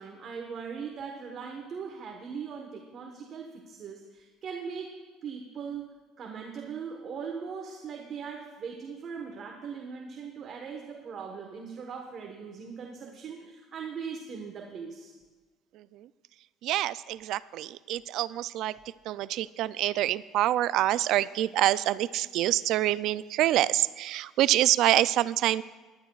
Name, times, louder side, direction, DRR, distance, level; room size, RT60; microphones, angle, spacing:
voice 1, 0.0-5.0 5.2-15.1, right 6 dB, 50° right, 1 dB, 1.2 m, -40 dB
voice 2, 15.8-16.1 16.6-18.7 19.1-25.6, right 14 dB, 70° right, 18 dB, 0.3 m, -26 dB
19.0 x 11.0 x 2.4 m, 1.3 s
cardioid pair, 110°, 0 cm